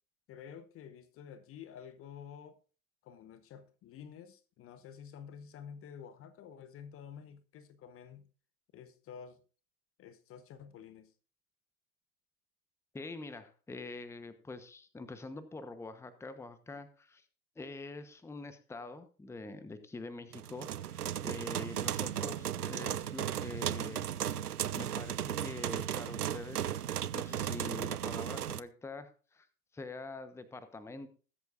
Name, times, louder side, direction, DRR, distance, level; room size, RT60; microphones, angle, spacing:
voice 1, 0.3-2.6 3.0-8.3 8.7-9.4 10.0-11.1, left 7 dB, 30° left, 1.0 m, -50 dB
voice 2, 12.9-17.2 17.6-24.1 24.7-29.5 29.7-31.1, left 3 dB, 5° left, 1.0 m, -45 dB
sound 1, 20.3-28.6, right 10 dB, 90° right, 0.7 m, -35 dB
20.5 x 8.2 x 2.5 m
hypercardioid pair, 100°, 44 cm